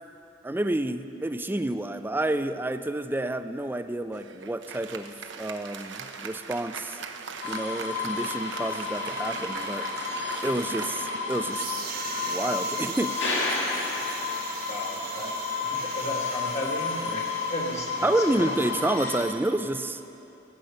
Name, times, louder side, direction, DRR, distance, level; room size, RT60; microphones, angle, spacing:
voice 1, 0.4-7.0 7.4-9.9 10.4-11.8 12.2-13.6 18.0-20.0, right 1 dB, 10° right, 10 dB, 0.4 m, -29 dB
Applause, 4.1-13.9, right 5 dB, 85° right, 0.8 m, -40 dB
sound 1, 7.4-19.2, left 4 dB, 80° left, 1.9 m, -31 dB
sound 2, 11.5-18.7, right 6 dB, 55° right, 1.2 m, -40 dB
voice 2, 14.7-18.5, left 1 dB, 40° left, 0 dB, 1.7 m, -35 dB
18.0 x 8.1 x 5.7 m, 2.9 s
head